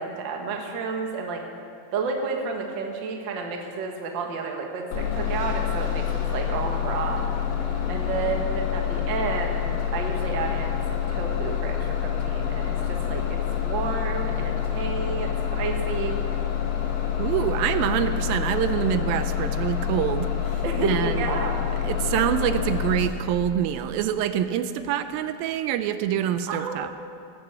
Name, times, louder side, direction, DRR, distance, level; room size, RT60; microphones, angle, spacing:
voice 1, 0.0-1.4 1.9-6.0 6.3-7.2 7.9-16.2 20.6-21.7 26.5-26.8, right 4 dB, 60° right, 2 dB, 1.2 m, -31 dB
Bus, 4.9-23.1, left 9 dB, 70° left, 3.1 m, -27 dB
voice 2, 17.2-20.3 20.8-21.2 21.8-26.9, right 10 dB, 80° right, 10 dB, 2.3 m, -25 dB
16.0 x 9.9 x 7.5 m, 2.4 s
omnidirectional pair, 4.3 m